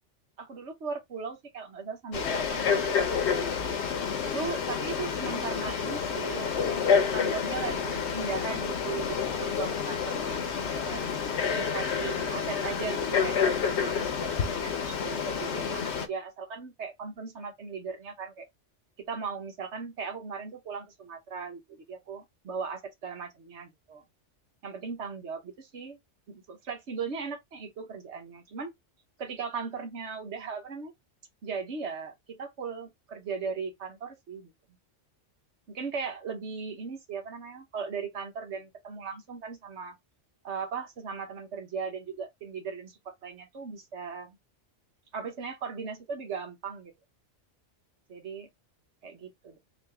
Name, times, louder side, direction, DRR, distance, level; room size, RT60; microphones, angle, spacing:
voice 1, 0.4-3.5 4.3-11.0 11.6-18.5 19.1-24.0 24.6-26.0 26.3-28.7 29.2-30.9 31.4-34.5 35.7-40.0 40.4-44.4 45.1-46.9 48.1-48.5 49.0-49.6, right 5 dB, 70° right, 1.3 m, -38 dB
Frog, 2.1-16.1, left 6 dB, 65° left, 1.0 m, -29 dB
3.8 x 2.6 x 3.3 m
omnidirectional pair, 1.3 m